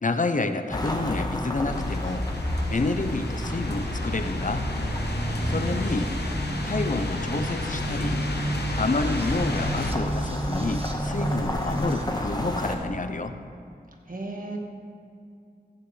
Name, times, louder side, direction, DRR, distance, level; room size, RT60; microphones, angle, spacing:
voice 1, 0.0-2.3 2.7-4.7 5.4-6.1 6.6-8.3 8.8-13.4, left 3 dB, 50° left, 8 dB, 0.5 m, -29 dB
sound 1, 0.7-7.2 8.3-12.8, left 1 dB, 25° left, 1.2 m, -33 dB
sound 2, 1.7-9.9, left 2 dB, 75° left, 0.9 m, -32 dB
sound 3, 3.4-12.0, right 1 dB, 35° right, 1.2 m, -32 dB
voice 2, 5.0-7.0 14.1-14.6, right 2 dB, 55° right, 0 dB, 1.4 m, -39 dB
14.5 x 9.2 x 3.2 m, 2.3 s
wide cardioid pair, 55°, 17 cm